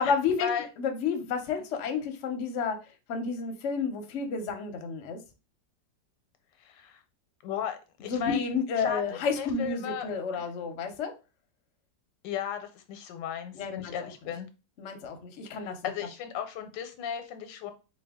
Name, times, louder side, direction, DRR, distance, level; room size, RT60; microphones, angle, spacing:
voice 1, 0.0-0.5 0.8-2.8 3.1-5.2 8.1-11.1 13.5-13.9 14.8-15.8, left 5 dB, 60° left, 5 dB, 0.8 m, -30 dB
voice 2, 6.6-7.0 7.4-8.4 8.7-10.1 10.3-10.4 12.2-14.5 15.6-17.7, left 8 dB, 85° left, 8 dB, 1.3 m, -35 dB
4.2 x 2.3 x 3.5 m, 0.31 s
omnidirectional pair, 1.9 m